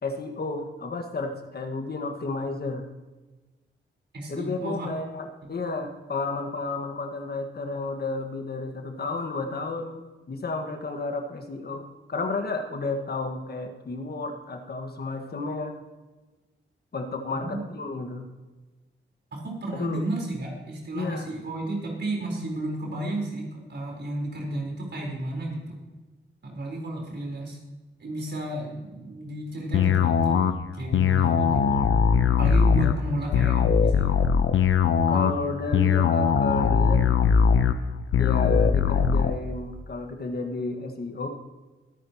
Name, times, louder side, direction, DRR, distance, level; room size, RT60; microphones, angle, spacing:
voice 1, 0.0-2.8 4.3-15.7 16.9-18.2 19.7-20.0 20.9-21.3 31.2-31.6 35.1-37.0 38.2-41.3, left 3 dB, 50° left, 4 dB, 1.7 m, -32 dB
voice 2, 4.1-4.9 17.3-17.6 19.3-25.8 26.4-27.6 28.0-30.4 30.7-31.6 32.4-34.2, right 1 dB, 60° right, -1 dB, 4.4 m, -32 dB
sound 1, 29.7-39.3, left 6 dB, 80° left, 0.8 m, -21 dB
22.0 x 9.7 x 3.0 m, 1.2 s
cardioid pair, 80°, 20 cm